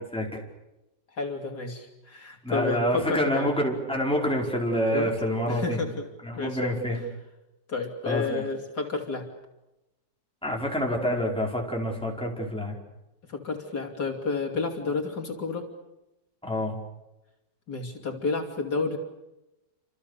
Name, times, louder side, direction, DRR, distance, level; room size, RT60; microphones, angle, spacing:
voice 1, 1.2-3.5 4.9-5.1 5.5-6.0 6.3-6.8 7.7-9.3 13.3-15.7 17.7-19.0, left 4 dB, 60° left, 2 dB, 3.3 m, -30 dB
voice 2, 2.4-5.8 6.2-7.0 8.1-8.4 10.4-12.8 16.4-16.8, equal, 5° left, -1 dB, 5.1 m, -27 dB
30.0 x 26.5 x 6.8 m, 0.95 s
omnidirectional pair, 1.9 m